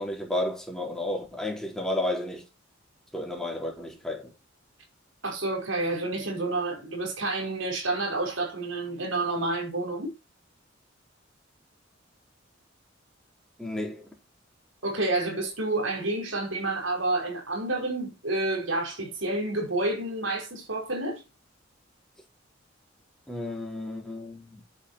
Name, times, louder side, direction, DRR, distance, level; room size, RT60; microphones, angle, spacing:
voice 1, 0.0-2.4 3.1-4.3 13.6-14.1 23.3-24.6, left 1 dB, 5° left, 4.3 m, -32 dB
voice 2, 5.2-10.1 14.8-21.2, right 2 dB, 85° right, 5.4 m, -29 dB
10.0 x 8.2 x 4.4 m
head